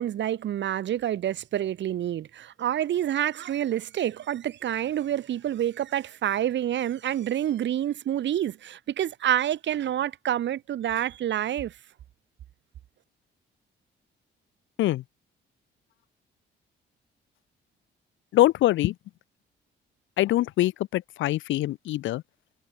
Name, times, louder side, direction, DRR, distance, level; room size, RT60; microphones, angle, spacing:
voice 1, 0.0-11.7, right 11 dB, 65° right, 1.4 m, -28 dB
voice 2, 18.3-19.0 20.2-22.2, left 15 dB, 75° left, 0.5 m, -23 dB
cardioid pair, 90°, 20 cm